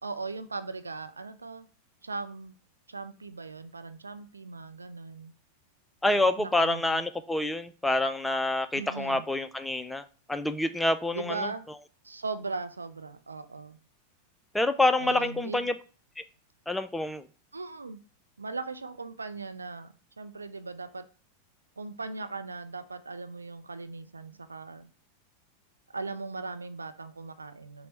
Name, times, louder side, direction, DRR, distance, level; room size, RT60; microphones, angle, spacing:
voice 1, 0.0-1.7 2.0-2.5 2.9-5.3 6.1-7.0 8.7-9.2 11.1-11.7 12.0-13.8 15.0-15.7 17.5-18.0 18.4-21.1 21.8-24.9 25.9-27.9, right 3 dB, 80° right, 10 dB, 0.4 m, -39 dB
voice 2, 6.0-10.0 10.3-11.5 14.5-15.7 16.7-17.3, left 2 dB, 5° left, 10 dB, 0.3 m, -27 dB
5.8 x 2.1 x 4.4 m, 0.37 s
figure-of-eight pair, 90°, 0 cm